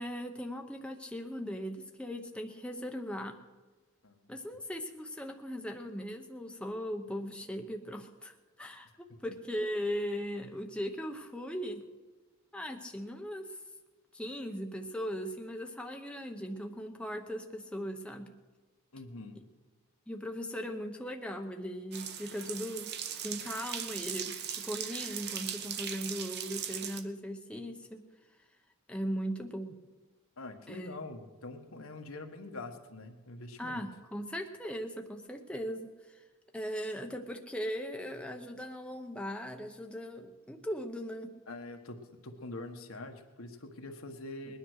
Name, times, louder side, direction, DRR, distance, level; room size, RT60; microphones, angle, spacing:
voice 1, 0.0-3.4 4.3-8.9 9.2-11.8 12.5-13.6 14.1-18.3 20.1-22.9 23.2-28.0 28.9-29.7 30.7-31.0 33.6-36.2 36.5-41.3, equal, 5° left, 3 dB, 0.8 m, -38 dB
voice 2, 18.9-19.4 30.4-33.8 41.5-44.6, left 2 dB, 75° left, 4 dB, 1.5 m, -44 dB
sound 1, 21.9-27.0, right 9 dB, 50° right, 1.0 m, -39 dB
20.5 x 10.0 x 6.4 m, 1.3 s
head